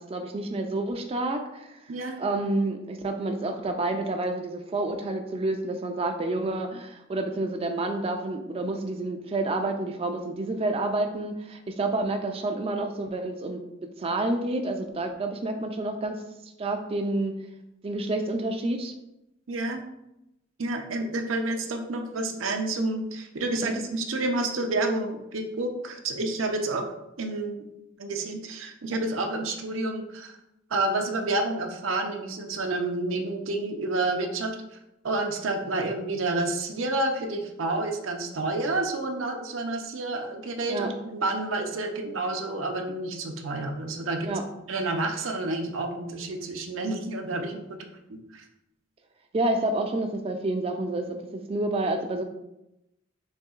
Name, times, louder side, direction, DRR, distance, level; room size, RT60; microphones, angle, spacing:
voice 1, 0.0-1.8 2.2-13.6 14.0-16.2 16.4-17.3 17.8-18.9 23.6-23.8 40.7-40.9 44.2-44.4 49.3-52.2, right 2 dB, 30° right, 4 dB, 0.4 m, -29 dB
voice 2, 1.9-2.2 19.5-19.8 20.6-26.9 27.2-27.6 28.0-30.4 30.7-34.6 35.0-44.3 44.7-48.4, right 2 dB, 85° right, 4 dB, 0.6 m, -29 dB
6.5 x 2.8 x 2.4 m, 0.87 s
head